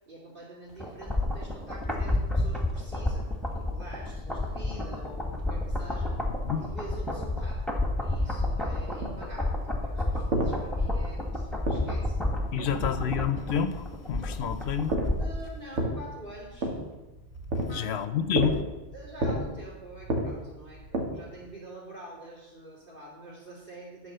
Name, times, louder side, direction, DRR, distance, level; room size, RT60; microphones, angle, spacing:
voice 1, 0.1-6.2 6.5-7.7 7.9-12.2 12.5-13.1 15.1-16.7 17.7-18.2 18.9-24.1, right 1 dB, 50° right, 2.8 m, -46 dB
sound 1, 0.8-15.5 15.8-15.9, left 1 dB, ahead, 1.2 m, -30 dB
sound 2, 9.0-12.4 14.8-21.5, right 1 dB, 85° right, 1.7 m, -33 dB
voice 2, 12.5-15.0 17.7-18.6, left 7 dB, 70° left, 0.9 m, -29 dB
9.9 x 4.8 x 6.7 m
omnidirectional pair, 1.2 m